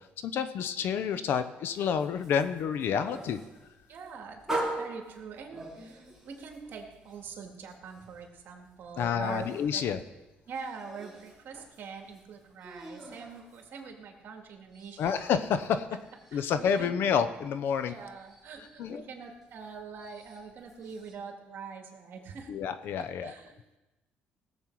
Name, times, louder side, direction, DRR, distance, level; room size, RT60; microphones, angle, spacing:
voice 1, 0.0-3.4 9.0-10.0 15.0-15.8 16.3-17.9 18.8-19.0 22.5-23.3, left 7 dB, 70° left, 11 dB, 0.8 m, -29 dB
sound 1, 1.7-14.2 14.5-21.1, right 2 dB, 5° right, 3.1 m, -43 dB
voice 2, 3.9-9.8 10.5-15.2 16.3-16.9 17.9-22.5 23.0-23.5, right 5 dB, 60° right, 3 dB, 2.2 m, -44 dB
18.0 x 7.4 x 4.7 m, 1.0 s
cardioid pair, 110°, 4 cm